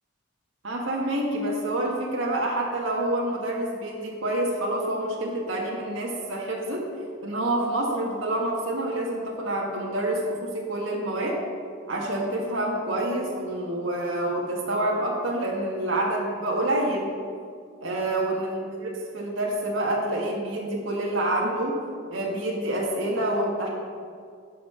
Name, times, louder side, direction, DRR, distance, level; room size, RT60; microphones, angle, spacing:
voice 1, 0.6-6.8 7.2-11.4 11.9-17.1 17.8-18.9 19.1-21.8 22.1-23.7, right 1 dB, 85° right, -2 dB, 1.7 m, -27 dB
11.0 x 5.6 x 7.0 m, 2.2 s
head